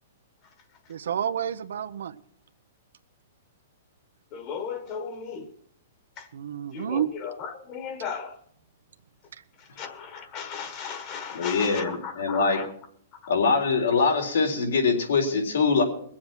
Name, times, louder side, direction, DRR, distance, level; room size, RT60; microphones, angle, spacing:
voice 1, 0.9-2.2 6.3-7.1, right 9 dB, 75° right, 0.7 m, -29 dB
voice 2, 4.3-5.5 6.2-6.3 6.7-8.4 9.8-12.7, left 6 dB, 30° left, 1.3 m, -36 dB
voice 3, 11.3-12.6 13.3-15.8, left 4 dB, 90° left, 3.8 m, -23 dB
21.0 x 7.6 x 5.9 m
hypercardioid pair, 165°, 0 cm